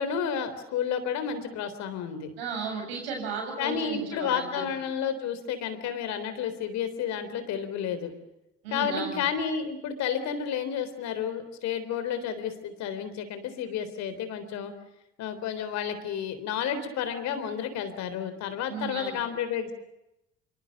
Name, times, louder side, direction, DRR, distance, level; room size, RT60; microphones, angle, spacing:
voice 1, 0.0-2.3 3.6-8.1 8.7-14.7 15.2-19.7, left 7 dB, 60° left, 10 dB, 3.8 m, -31 dB
voice 2, 2.4-4.7 8.6-9.2 18.7-19.2, right 4 dB, 80° right, 3 dB, 7.7 m, -35 dB
26.5 x 25.0 x 6.8 m, 0.88 s
hypercardioid pair, 55°, 30 cm